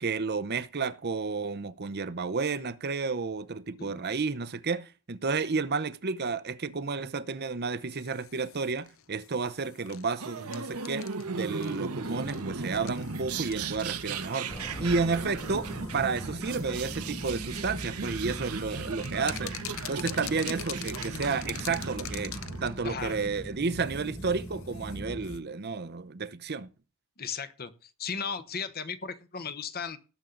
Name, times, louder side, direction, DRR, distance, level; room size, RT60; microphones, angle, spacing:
voice 1, 0.0-14.5 14.8-19.5 19.9-26.7, right 4 dB, 45° right, 0.8 m, -31 dB
sound 1, 7.9-25.4, left 12 dB, 60° left, 0.8 m, -46 dB
sound 2, 10.2-22.9, right 4 dB, 85° right, 1.2 m, -37 dB
sound 3, 14.5-25.4, equal, 15° left, 1.6 m, -41 dB
voice 2, 22.8-23.1 27.2-30.0, left 6 dB, 45° left, 1.1 m, -36 dB
18.5 x 7.3 x 3.9 m
head